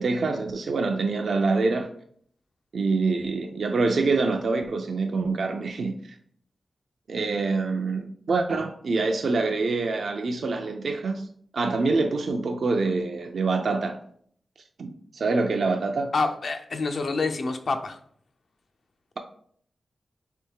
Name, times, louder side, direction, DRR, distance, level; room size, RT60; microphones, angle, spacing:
voice 1, 0.0-1.9 2.7-6.2 7.1-11.3 11.5-14.0 14.8-16.1, right 3 dB, 75° right, 0.4 m, -25 dB
voice 2, 16.1-18.0, left 3 dB, 70° left, 0.5 m, -27 dB
3.3 x 3.1 x 4.5 m
cardioid pair, 45°, 0 cm